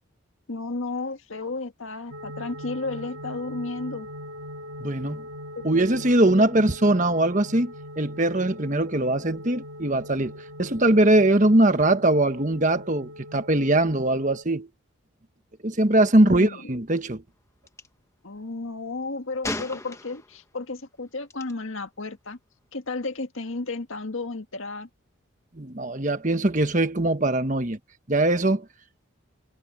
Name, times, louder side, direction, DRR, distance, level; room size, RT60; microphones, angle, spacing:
voice 1, 0.5-4.1 5.6-5.8 6.3-6.7 16.2-16.7 18.2-22.4 22.7-24.9, left 3 dB, 75° left, 1.7 m, -33 dB
sound 1, 2.1-14.4, equal, 85° right, 1.8 m, -41 dB
voice 2, 4.8-5.2 5.6-10.3 10.6-14.7 15.6-17.2 25.6-27.8 28.1-28.6, right 1 dB, 35° right, 1.4 m, -21 dB
Gunshot gunfire, 17.7-17.9 19.4-20.4 21.3-21.5, left 2 dB, 15° left, 1.1 m, -34 dB
head